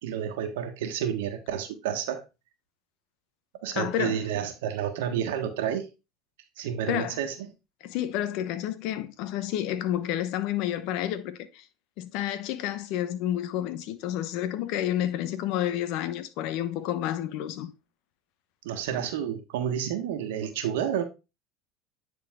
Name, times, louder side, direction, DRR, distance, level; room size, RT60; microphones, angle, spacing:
voice 1, 0.0-2.2 3.6-5.9 6.6-7.5 18.6-21.0, right 9 dB, 90° right, 1.4 m, -30 dB
voice 2, 3.8-4.2 6.9-7.2 7.8-11.6 12.0-17.7, left 12 dB, 70° left, 0.9 m, -30 dB
9.5 x 4.1 x 3.6 m
supercardioid pair, 105°, 0 cm